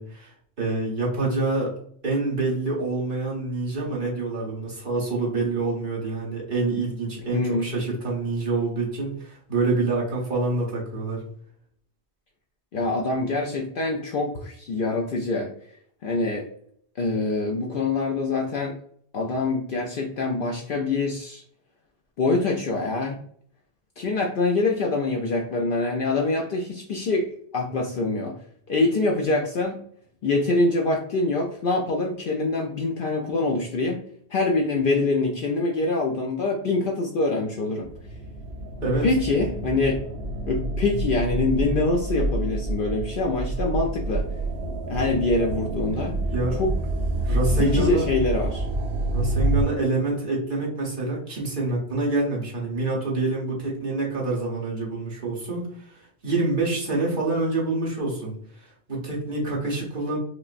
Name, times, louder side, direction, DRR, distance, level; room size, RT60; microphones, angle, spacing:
voice 1, 0.0-1.7 2.0-11.2 38.8-39.0 46.3-46.6 47.2-48.1 49.1-60.2, right 3 dB, 50° right, -4 dB, 1.3 m, -27 dB
voice 2, 7.3-7.7 12.7-15.5 16.0-16.5 17.0-18.7 19.1-21.4 22.2-23.2 24.0-28.3 28.7-29.8 30.2-34.0 34.3-37.9 39.0-40.0 40.5-44.3 44.9-46.2 46.5-46.7 47.5-48.6, left 3 dB, 60° left, 1 dB, 0.6 m, -25 dB
sound 1, 37.8-49.6, right 1 dB, 80° right, 0.9 m, -28 dB
4.9 x 2.1 x 2.5 m, 0.62 s
omnidirectional pair, 1.1 m